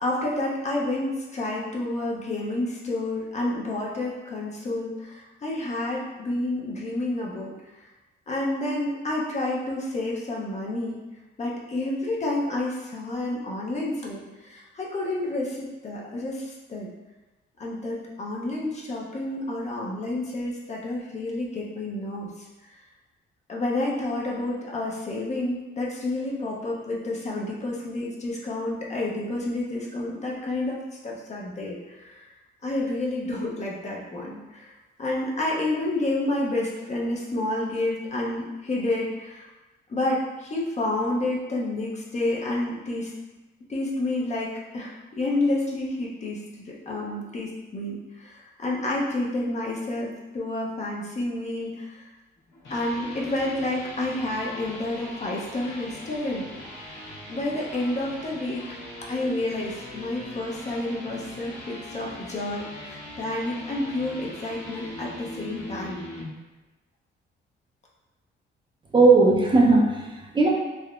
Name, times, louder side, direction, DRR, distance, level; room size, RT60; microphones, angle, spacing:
voice 1, 0.0-7.5 8.3-11.0 11.4-16.9 17.6-22.5 23.5-32.2 32.6-34.7 35.0-39.5 39.9-43.1 43.7-52.1 52.7-56.5 56.8-58.7 59.1-66.1, left 2 dB, 35° left, -3 dB, 0.6 m, -29 dB
sound 1, 52.4-66.3, left 1 dB, 65° left, 1.1 m, -41 dB
voice 2, 68.9-70.5, right 3 dB, 25° right, -3 dB, 0.5 m, -17 dB
3.5 x 2.1 x 2.4 m, 1.1 s
cardioid pair, 90°, 20 cm